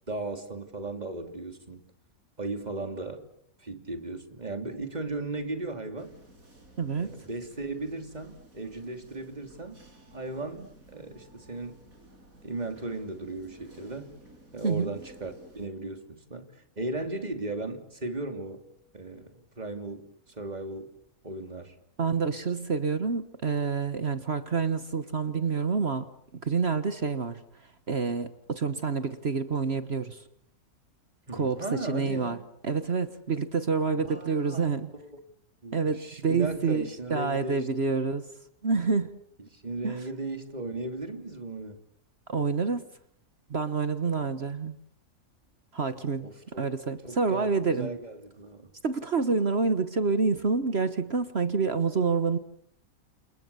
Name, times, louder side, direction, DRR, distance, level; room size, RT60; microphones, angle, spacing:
voice 1, 0.1-1.8 2.4-3.2 3.6-6.1 6.9-9.8 10.1-11.8 12.4-14.1 14.5-16.5 16.8-18.6 18.9-20.9 21.2-21.7 31.3-32.4 33.9-34.7 35.0-35.2 35.6-37.7 39.5-41.8 46.2-46.7 47.0-48.7, right 2 dB, 30° right, 6 dB, 3.1 m, -36 dB
sound 1, 6.0-15.7, right 1 dB, 70° right, 6.2 m, -54 dB
voice 2, 6.8-7.2 14.6-15.0 22.0-26.0 26.4-27.4 27.9-30.2 31.3-32.4 32.6-34.9 35.7-38.2 38.6-39.1 39.8-40.0 42.3-42.8 43.5-44.8 45.7-46.3 46.6-47.9 48.8-52.4, right 4 dB, 45° right, 11 dB, 1.5 m, -28 dB
29.5 x 28.5 x 7.0 m, 0.68 s
omnidirectional pair, 1.5 m